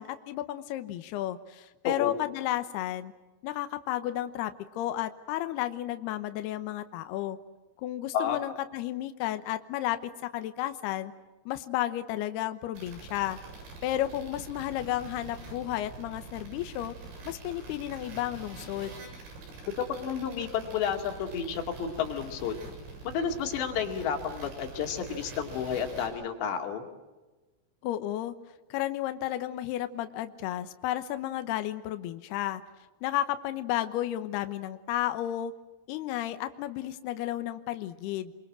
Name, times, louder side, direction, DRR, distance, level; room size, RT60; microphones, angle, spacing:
voice 1, 0.0-3.1 3.4-7.4 7.8-11.1 11.5-13.4 13.8-16.9 17.3-19.0 27.8-28.3 28.7-32.6 33.0-35.5 35.9-38.3, left 13 dB, 80° left, 9 dB, 2.4 m, -32 dB
voice 2, 1.9-2.2 8.1-8.4 19.8-22.6 23.0-26.9, left 7 dB, 60° left, 4 dB, 4.4 m, -31 dB
sound 1, 12.7-26.1, right 3 dB, 90° right, 10.0 m, -45 dB
28.5 x 23.5 x 7.6 m, 1.2 s
omnidirectional pair, 5.9 m